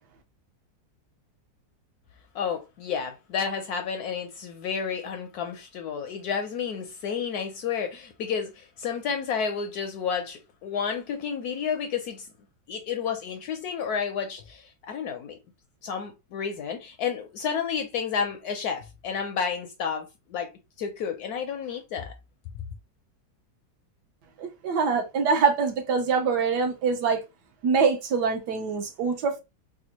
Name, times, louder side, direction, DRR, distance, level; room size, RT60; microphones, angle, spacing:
voice 1, 2.3-12.3 12.7-15.4 15.8-20.5 20.8-22.1 22.5-22.6, left 6 dB, 70° left, 0.9 m, -31 dB
voice 2, 24.4-27.2 27.6-29.4, right 5 dB, 70° right, 1.2 m, -24 dB
3.4 x 2.3 x 2.8 m
omnidirectional pair, 2.0 m